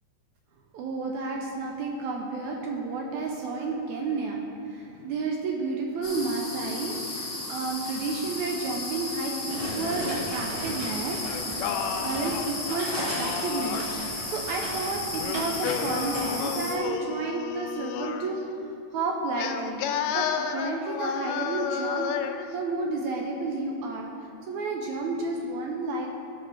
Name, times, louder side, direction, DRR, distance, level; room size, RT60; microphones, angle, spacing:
voice 1, 0.7-11.2 11.5-11.7 12.0-13.9 14.2-18.4 18.9-19.8 20.1-22.1 22.5-24.1 24.4-26.1, right 3 dB, 75° right, 0 dB, 1.8 m, -31 dB
sound 1, 6.0-16.7, left 2 dB, 50° left, 0.9 m, -35 dB
sound 2, 9.4-16.4, equal, 60° right, 0.6 m, -36 dB
Singing, 11.2-14.1 15.1-18.3 19.4-22.5, left 8 dB, 80° left, 2.0 m, -32 dB
16.5 x 5.7 x 3.3 m, 2.7 s
omnidirectional pair, 3.8 m